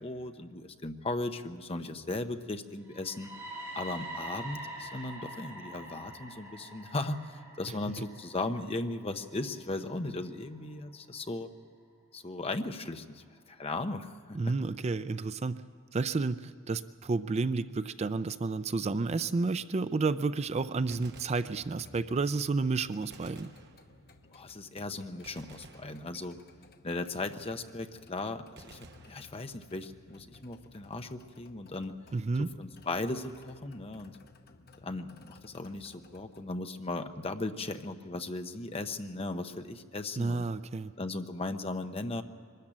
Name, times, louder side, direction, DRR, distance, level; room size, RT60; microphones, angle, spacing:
voice 1, 0.0-3.3 3.8-11.5 12.1-14.4 24.3-26.4 26.8-32.0 32.6-34.2 34.8-40.5 41.0-42.2, left 2 dB, 30° left, 8 dB, 0.9 m, -37 dB
sound 1, 2.9-10.8, right 1 dB, 15° right, 6.4 m, -45 dB
voice 2, 14.3-15.6 15.9-23.5 32.1-32.5 40.2-40.9, right 3 dB, 30° right, 13 dB, 0.4 m, -31 dB
sound 2, 20.5-36.5, left 3 dB, 50° left, 0.9 m, -58 dB
Gunshot gunfire, 20.9-22.1 23.1-24.3 25.2-26.7 28.6-29.9, right 3 dB, 55° right, 1.2 m, -55 dB
23.0 x 13.5 x 8.9 m, 2.2 s
head